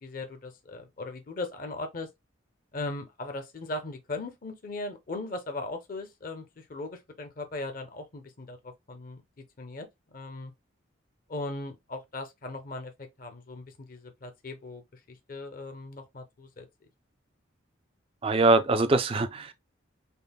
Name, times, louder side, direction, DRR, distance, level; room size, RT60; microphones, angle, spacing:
voice 1, 0.0-2.1 2.7-10.5 11.3-14.8 15.1-16.7, left 2 dB, 45° left, 0.6 m, -38 dB
voice 2, 18.2-19.5, right 2 dB, 25° right, 0.3 m, -23 dB
5.4 x 2.1 x 2.2 m
head